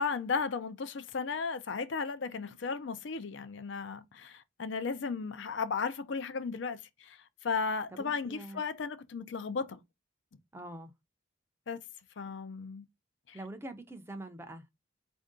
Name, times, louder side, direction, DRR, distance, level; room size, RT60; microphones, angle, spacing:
voice 1, 0.0-9.8 11.7-11.8 12.2-12.8 13.3-13.4, left 5 dB, 65° left, 0.5 m, -35 dB
voice 2, 7.9-8.6 10.5-10.9 13.3-14.7, right 1 dB, 10° right, 0.5 m, -44 dB
4.4 x 2.6 x 3.6 m
head